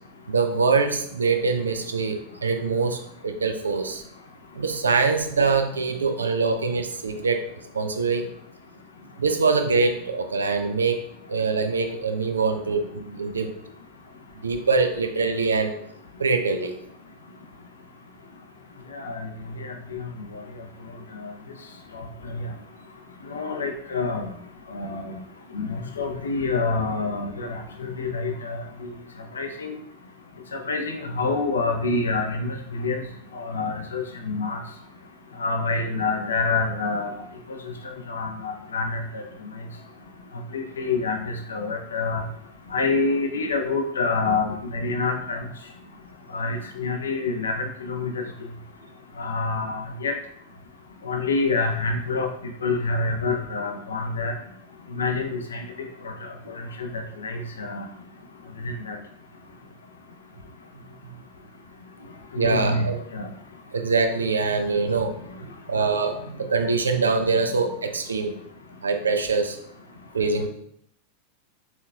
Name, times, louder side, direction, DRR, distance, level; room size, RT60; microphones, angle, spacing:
voice 1, 0.3-4.0 4.5-7.4 7.7-8.3 9.2-11.0 11.3-13.5 14.4-15.7 16.2-16.8 56.4-56.6 58.6-58.7 62.4-63.0 63.7-65.1 65.7-68.4 68.8-69.6 70.1-70.5, right 4 dB, 75° right, 6 dB, 0.5 m, -24 dB
voice 2, 18.9-19.3 19.6-20.1 21.9-22.0 22.3-22.4 23.3-24.3 24.7-25.2 25.5-28.6 29.4-29.8 30.5-33.0 33.4-34.6 35.4-37.2 38.1-39.2 40.5-41.2 41.5-42.2 42.7-45.4 46.3-48.1 49.2-50.1 51.0-52.3 52.6-54.3 54.9-55.6 56.2-56.3 56.8-57.8 58.6-59.0 62.3-62.9 63.1-63.3, left 3 dB, 70° left, 4 dB, 0.6 m, -27 dB
4.3 x 4.1 x 2.3 m, 0.70 s
figure-of-eight pair, 90°, 0 cm